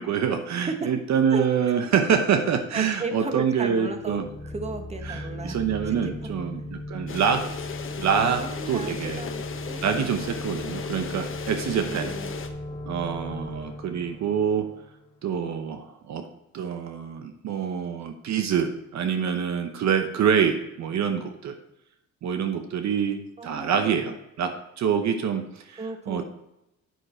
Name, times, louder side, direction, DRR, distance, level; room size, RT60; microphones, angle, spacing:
voice 1, 0.0-4.2 5.1-7.5 8.0-9.2 9.8-12.1 12.9-14.7 15.2-16.3 16.5-21.5 22.2-26.2, right 7 dB, 65° right, 7 dB, 0.9 m, -26 dB
voice 2, 1.3-1.8 2.7-5.6 5.9-6.3 8.1-10.0 11.9-12.4 23.4-24.2 25.8-26.2, right 3 dB, 20° right, 6 dB, 1.3 m, -35 dB
sound 1, 3.9-15.4, left 1 dB, 25° left, 2.8 m, -37 dB
sound 2, 7.1-12.5, left 6 dB, 45° left, 1.0 m, -36 dB
9.3 x 6.5 x 4.4 m, 0.86 s
cardioid pair, 90°, 30 cm